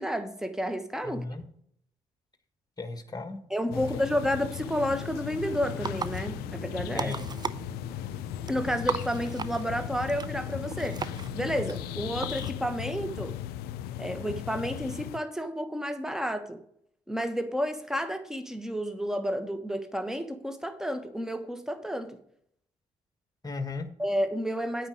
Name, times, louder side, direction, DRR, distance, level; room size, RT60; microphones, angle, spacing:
voice 1, 0.0-1.2 3.5-7.2 8.5-11.0 11.3-13.3 14.0-16.6 17.1-22.2 24.0-24.9, equal, 5° right, 1.2 m, -31 dB
voice 2, 1.0-1.4 2.8-4.0 6.9-7.3 23.4-23.9, left 3 dB, 20° left, 1.5 m, -36 dB
sound 1, 3.7-15.2, left 12 dB, 70° left, 0.4 m, -37 dB
sound 2, 5.4-12.5, right 5 dB, 25° right, 0.5 m, -38 dB
8.8 x 5.0 x 7.8 m
hypercardioid pair, 40°, 17 cm